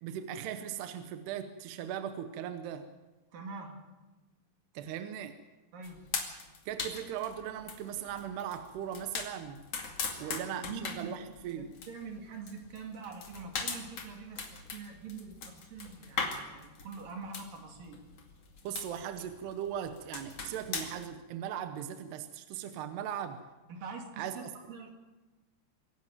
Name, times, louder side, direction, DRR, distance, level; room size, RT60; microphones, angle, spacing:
voice 1, 0.0-2.9 4.7-5.4 6.7-9.6 10.2-11.7 18.6-23.4 24.2-24.4, right 9 dB, 75° right, 8 dB, 2.9 m, -38 dB
voice 2, 3.3-3.8 5.7-6.1 10.2-11.2 11.5-18.0 23.7-24.9, right 4 dB, 55° right, 3 dB, 3.7 m, -44 dB
sound 1, 5.8-21.1, left 5 dB, 45° left, 2.8 m, -40 dB
24.5 x 11.5 x 9.1 m, 1.1 s
omnidirectional pair, 4.9 m